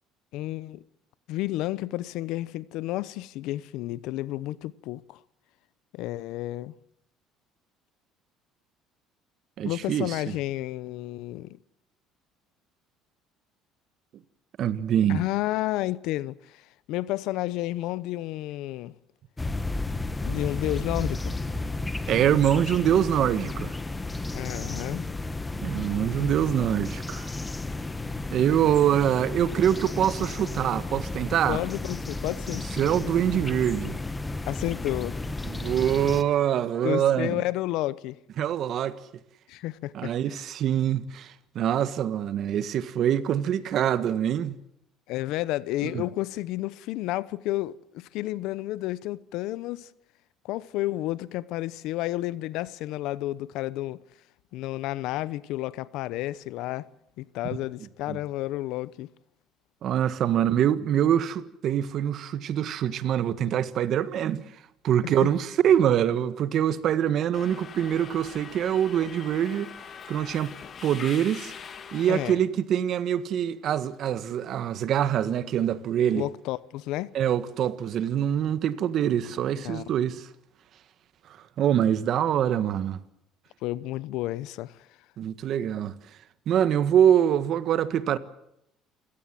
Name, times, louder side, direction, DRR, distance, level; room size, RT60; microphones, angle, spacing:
voice 1, 0.3-0.8 1.3-5.2 5.9-6.7 9.6-11.6 15.1-18.9 20.2-21.4 24.3-25.0 31.4-32.6 34.5-35.2 36.8-38.2 39.5-40.1 45.1-49.9 50.4-54.0 54.5-56.9 57.2-59.1 65.0-65.3 72.1-72.4 76.1-77.1 79.5-80.1 83.6-84.9, left 16 dB, 75° left, 0.9 m, -31 dB
voice 2, 9.6-10.2 14.6-15.2 22.1-23.7 25.6-27.3 28.3-31.6 32.8-34.0 35.4-37.4 38.4-39.0 39.9-44.6 45.8-46.0 58.1-58.2 59.8-64.4 64.8-69.7 70.1-70.5 70.8-71.5 71.9-76.3 77.1-80.3 81.6-83.0 85.2-85.9 86.5-88.2, right 10 dB, 55° right, 1.6 m, -24 dB
sound 1, 19.4-36.2, left 2 dB, 15° left, 1.4 m, -33 dB
Subway metro underground, 67.3-72.3, left 7 dB, 40° left, 2.1 m, -42 dB
28.5 x 17.5 x 7.7 m
cardioid pair, 105°, 0 cm